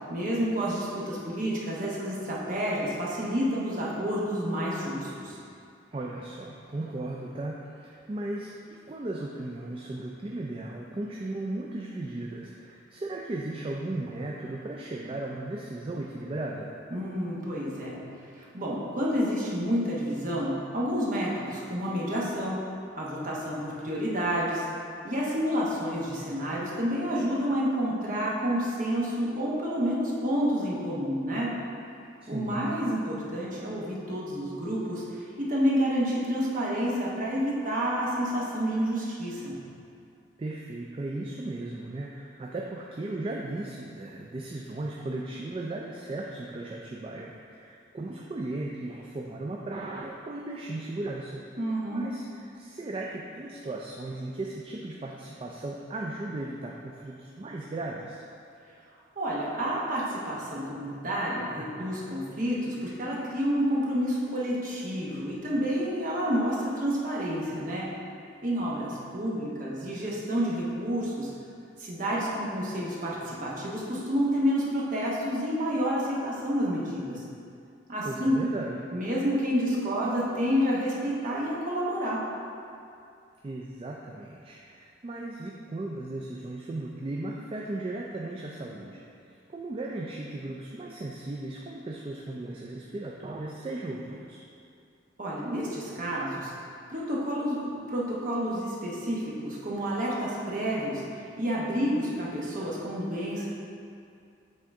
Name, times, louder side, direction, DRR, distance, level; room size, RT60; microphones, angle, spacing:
voice 1, 0.1-5.4 16.9-18.0 18.4-22.6 23.0-24.6 25.0-31.5 32.3-39.5 51.6-52.0 59.2-67.9 68.4-71.3 71.8-77.2 77.9-78.4 78.9-82.2 95.2-96.5 96.9-103.5, equal, 45° right, -5 dB, 1.1 m, -29 dB
voice 2, 5.9-16.7 32.2-32.7 40.4-51.4 51.9-58.2 78.0-78.9 83.4-94.4, right 2 dB, 30° right, -2 dB, 0.3 m, -36 dB
7.6 x 3.8 x 3.5 m, 2.5 s
head